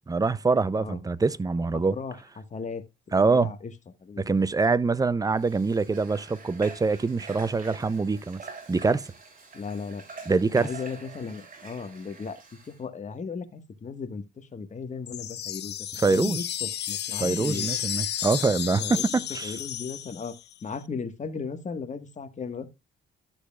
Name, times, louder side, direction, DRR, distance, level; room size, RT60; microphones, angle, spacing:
voice 1, 0.1-2.0 3.1-3.5 4.2-8.4 8.7-9.0 10.3-10.7 16.0-16.4 17.2-19.0 19.3-19.5, right 4 dB, 20° right, 0.6 m, -24 dB
voice 2, 1.7-3.7 4.0-4.2 9.5-10.0 10.5-12.4 12.7-17.7 18.7-19.0 19.4-20.3 20.6-22.7, left 5 dB, 35° left, 1.6 m, -36 dB
Water / Water tap faucet, 5.3-12.8, right 4 dB, 45° right, 3.3 m, -46 dB
sound 1, 15.1-20.5, left 11 dB, 60° left, 0.7 m, -33 dB
12.5 x 6.6 x 2.4 m
cardioid pair, 90°, 20 cm